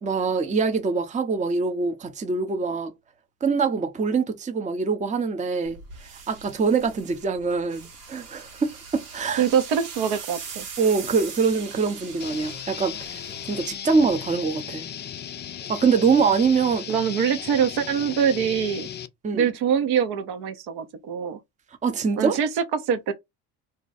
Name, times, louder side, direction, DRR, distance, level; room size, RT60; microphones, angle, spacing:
voice 1, 0.0-2.9 3.4-5.8 6.3-9.5 10.8-13.2 13.5-14.9 15.7-16.9 19.2-19.5 21.8-22.4, right 5 dB, 15° right, 0.6 m, -24 dB
sound 1, 5.6-14.3, right 5 dB, 85° right, 1.2 m, -41 dB
voice 2, 9.4-10.7 16.9-18.9 19.3-21.4 22.2-23.1, right 7 dB, 60° right, 0.8 m, -24 dB
sound 2, 12.2-19.1, left 9 dB, 25° left, 0.3 m, -36 dB
2.5 x 2.2 x 4.0 m
hypercardioid pair, 65°, 45 cm